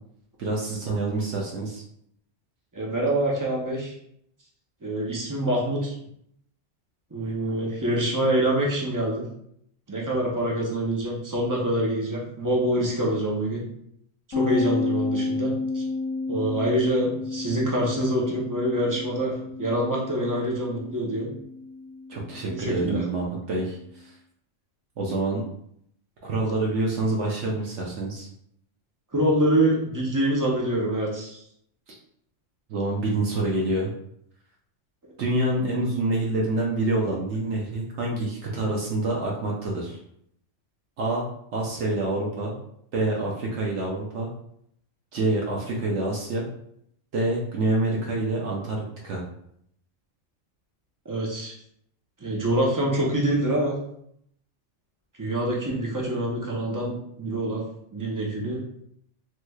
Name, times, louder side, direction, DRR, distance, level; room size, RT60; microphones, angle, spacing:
voice 1, 0.4-1.8 22.1-24.1 25.0-25.4 26.2-28.3 32.7-33.9 35.2-40.0 41.0-41.3 41.5-42.5 42.9-44.3 45.1-46.5 47.1-49.2, right 2 dB, 70° right, -2 dB, 0.9 m, -27 dB
voice 2, 2.7-3.9 4.8-5.9 7.1-9.2 9.9-13.6 14.3-15.8 16.3-19.3 19.6-21.3 22.4-23.0 29.1-31.4 51.1-51.5 52.2-53.7 55.2-57.6 57.9-58.6, right 1 dB, 25° right, -3 dB, 0.4 m, -25 dB
sound 1, 14.3-23.8, left 3 dB, 25° left, 0.8 m, -32 dB
3.1 x 3.0 x 2.3 m, 0.71 s
omnidirectional pair, 1.3 m